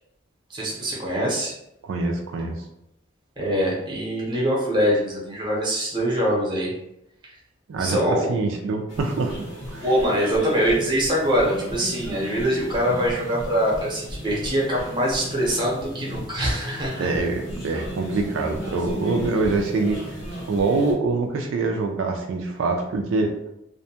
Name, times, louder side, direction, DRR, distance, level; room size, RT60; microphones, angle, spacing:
voice 1, 0.5-1.5 3.4-6.7 7.8-8.3 9.8-17.1, equal, 20° right, -4 dB, 0.7 m, -23 dB
voice 2, 1.8-2.6 7.7-9.5 9.7-9.9 17.0-20.2 20.5-23.3, right 3 dB, 80° right, 3 dB, 0.3 m, -25 dB
sound 1, 8.9-20.9, equal, 75° left, 0.9 m, -35 dB
2.5 x 2.2 x 2.7 m, 0.82 s
head